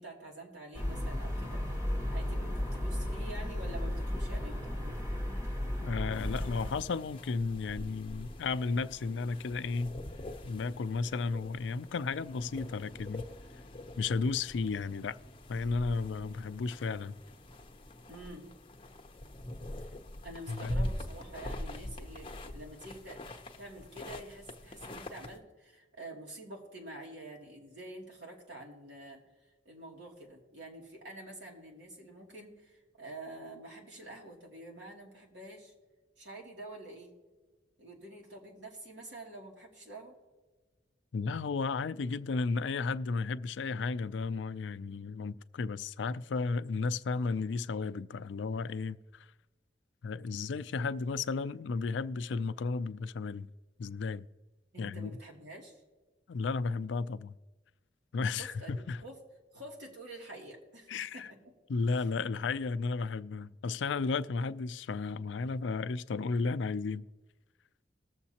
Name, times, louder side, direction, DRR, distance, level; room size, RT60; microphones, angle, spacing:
voice 1, 0.0-1.6 2.1-5.0 18.1-18.5 19.8-19.9 20.2-23.3 23.6-29.2 29.6-35.7 36.2-37.1 37.8-40.2 54.7-55.8 58.4-59.2 59.5-61.5, right 1 dB, 75° right, 2.5 m, -47 dB
sound 1, 0.7-6.7, left 1 dB, 20° right, 2.6 m, -34 dB
voice 2, 5.8-9.9 10.4-13.3 14.0-15.2 15.5-17.2 20.5-20.7 41.1-49.3 50.0-53.5 53.8-54.3 54.8-55.1 56.3-57.3 58.1-59.0 60.9-61.3 61.7-67.1, left 4 dB, 80° left, 0.4 m, -33 dB
sound 2, 6.1-25.4, left 1 dB, 30° left, 0.8 m, -43 dB
20.5 x 7.2 x 2.9 m
head